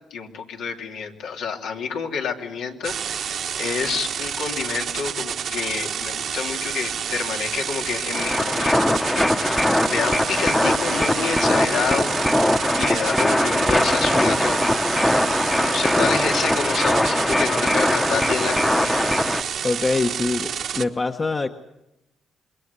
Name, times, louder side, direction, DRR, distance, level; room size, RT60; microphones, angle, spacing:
voice 1, 0.1-12.1 12.8-14.7 15.6-19.0, left 6 dB, 85° left, 1 dB, 2.9 m, -28 dB
sound 1, 2.8-20.8, right 8 dB, 65° right, 1.4 m, -29 dB
sound 2, 8.1-19.4, left 1 dB, 10° left, 1.1 m, -21 dB
voice 2, 19.6-21.5, left 3 dB, 30° left, 5 dB, 1.1 m, -24 dB
27.0 x 21.5 x 8.2 m, 0.92 s
cardioid pair, 90°, 0 cm